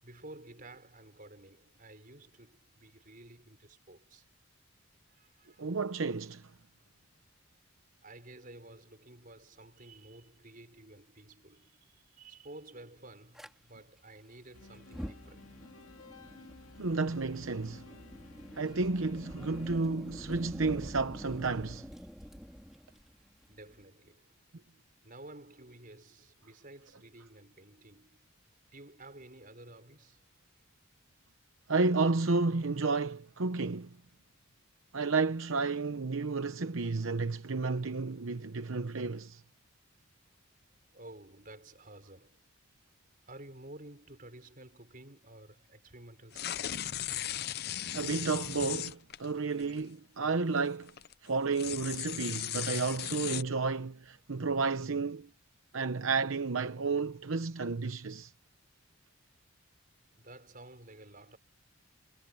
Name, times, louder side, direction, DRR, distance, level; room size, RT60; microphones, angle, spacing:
voice 1, 0.0-4.3 5.1-5.6 8.0-15.5 22.9-24.5 25.0-28.3 28.7-30.2 40.9-42.5 43.3-46.7 60.2-61.4, right 2 dB, 40° right, 5.4 m, -52 dB
voice 2, 5.6-6.5 16.8-17.9 18.6-21.9 31.7-33.9 34.9-39.4 47.9-50.9 51.2-55.3 55.7-58.3, right 4 dB, 75° right, 0.8 m, -31 dB
Fire, 13.3-13.5 14.8-23.8, equal, ahead, 2.9 m, -47 dB
sound 1, 14.5-19.8, left 2 dB, 85° left, 2.3 m, -54 dB
sound 2, 46.3-49.3 49.6-49.8 50.7-51.1 51.5-53.4, left 11 dB, 50° left, 0.6 m, -37 dB
head